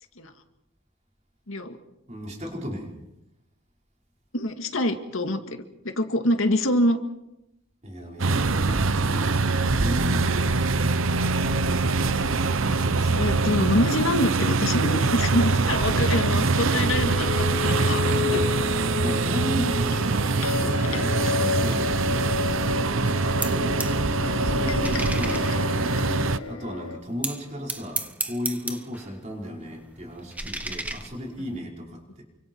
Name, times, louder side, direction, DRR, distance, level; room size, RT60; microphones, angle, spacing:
voice 1, 1.5-1.8 4.3-7.0 12.7-18.4, left 1 dB, 70° left, 6 dB, 2.1 m, -26 dB
voice 2, 2.1-2.9 7.8-11.1 19.0-22.4 22.7-23.9 24.2-25.5 26.5-32.2, equal, 30° right, -1 dB, 4.9 m, -35 dB
sound 1, 8.2-26.4, right 3 dB, 70° right, 0.9 m, -24 dB
sound 2, 16.7-27.0, left 5 dB, 90° left, 1.6 m, -31 dB
sound 3, 23.1-24.0 24.3-26.5 27.2-29.1 29.4-31.6, right 2 dB, 5° right, 1.2 m, -35 dB
29.0 x 25.0 x 4.7 m, 0.89 s
head